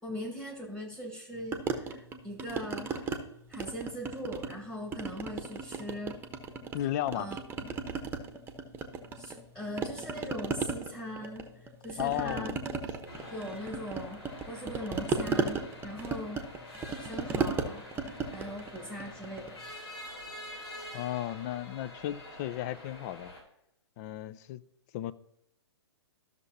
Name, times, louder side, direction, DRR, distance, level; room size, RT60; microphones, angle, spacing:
voice 1, 0.0-3.1 3.5-6.1 7.1-7.4 9.2-12.6 13.3-16.4 17.0-17.8 18.3-19.6, equal, 5° left, 1.7 m, -40 dB
sound 1, 1.5-3.2 3.5-4.6 4.9-6.8 7.1-9.5 9.8-19.6, right 5 dB, 15° right, 1.0 m, -35 dB
voice 2, 6.7-7.3 12.0-12.6 20.9-23.3 24.0-24.6 24.9-25.1, left 13 dB, 35° left, 0.5 m, -34 dB
sound 2, 13.1-23.4, left 1 dB, 60° left, 3.5 m, -47 dB
13.5 x 6.6 x 2.8 m
hypercardioid pair, 120°, 15 cm